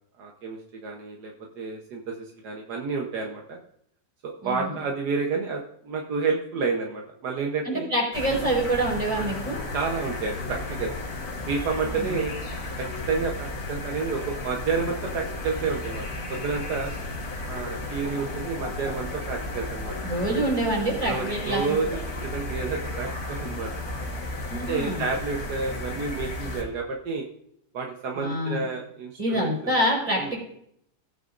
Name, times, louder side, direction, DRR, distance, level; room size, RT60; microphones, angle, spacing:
voice 1, 0.2-3.6 4.2-7.9 8.3-8.4 9.7-10.9 11.5-12.3 12.8-16.9 17.5-19.9 21.1-21.9 22.2-23.7 24.5-27.2 27.7-29.7 30.2-30.3, right 4 dB, 75° right, 0 dB, 1.5 m, -30 dB
voice 2, 4.4-4.7 7.6-9.6 11.8-12.1 20.0-21.6 21.9-22.0 24.5-25.0 28.2-28.6 29.2-30.4, right 1 dB, 20° right, -2 dB, 4.4 m, -26 dB
sound 1, 8.1-26.6, left 2 dB, 60° left, 2.3 m, -34 dB
18.0 x 9.0 x 2.5 m, 0.73 s
omnidirectional pair, 1.8 m